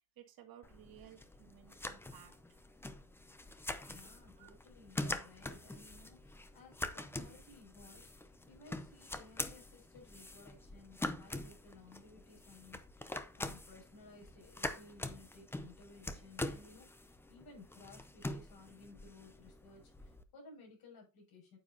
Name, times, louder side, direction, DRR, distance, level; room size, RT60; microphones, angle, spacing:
voice 1, 0.0-2.6 4.4-4.5, right 10 dB, 50° right, 2.3 m, -58 dB
sound 1, 0.6-20.2, left 2 dB, 5° left, 0.5 m, -45 dB
voice 2, 3.9-21.6, left 3 dB, 50° left, 6.4 m, -58 dB
9.4 x 9.1 x 2.8 m
cardioid pair, 160°, 46 cm